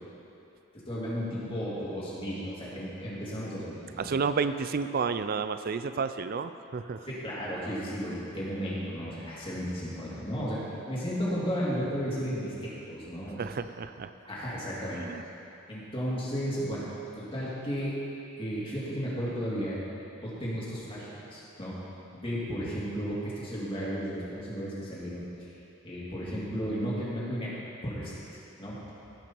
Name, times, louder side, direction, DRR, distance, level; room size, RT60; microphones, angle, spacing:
voice 1, 0.9-4.1 7.1-10.6 10.9-13.5 14.3-15.0 15.7-16.8 17.2-18.0 18.4-19.8 20.2-21.8 22.1-25.5 25.8-27.5 27.8-28.1 28.6-28.8, equal, 25° left, -7 dB, 2.6 m, -34 dB
voice 2, 4.0-7.1 13.4-14.1 14.9-15.2, right 5 dB, 45° right, 11 dB, 0.4 m, -31 dB
18.0 x 6.0 x 4.5 m, 2.9 s
head